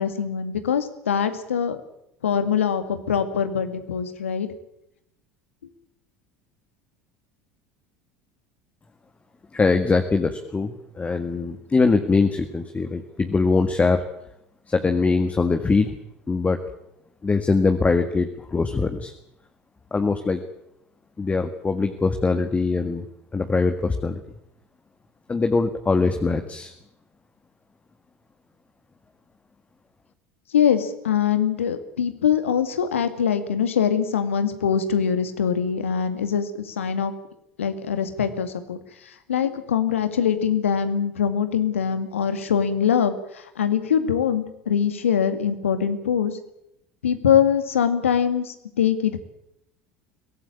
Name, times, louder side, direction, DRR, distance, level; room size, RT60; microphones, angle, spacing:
voice 1, 0.0-1.8 2.2-4.5 30.5-37.1 37.6-38.8 39.3-43.1 43.6-46.3 47.0-49.2, left 8 dB, 80° left, 10 dB, 2.2 m, -23 dB
voice 2, 9.5-14.0 14.7-16.0 16.3-16.6 17.2-19.1 19.9-20.4 21.2-23.1 23.3-24.2 25.3-26.7, left 4 dB, 20° left, 6 dB, 1.9 m, -22 dB
22.5 x 17.5 x 8.7 m, 0.81 s
figure-of-eight pair, 70°, 7 cm